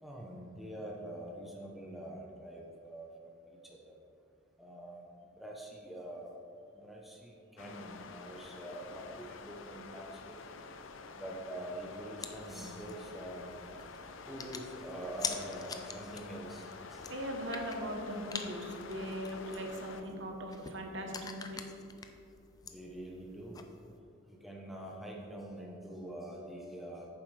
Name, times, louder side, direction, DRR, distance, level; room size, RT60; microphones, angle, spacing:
voice 1, 0.0-3.1 3.7-3.9 4.6-5.0 5.4-6.3 6.8-10.4 11.2-13.5 14.3-17.0 22.7-23.7 24.4-27.1, right 1 dB, ahead, -2 dB, 0.8 m, -45 dB
sound 1, 7.6-20.0, left 4 dB, 75° left, 0.5 m, -48 dB
sound 2, 12.2-24.0, left 5 dB, 20° left, 0.4 m, -46 dB
voice 2, 17.1-21.6, equal, 65° right, 2 dB, 1.0 m, -40 dB
9.5 x 7.0 x 3.3 m, 2.5 s
head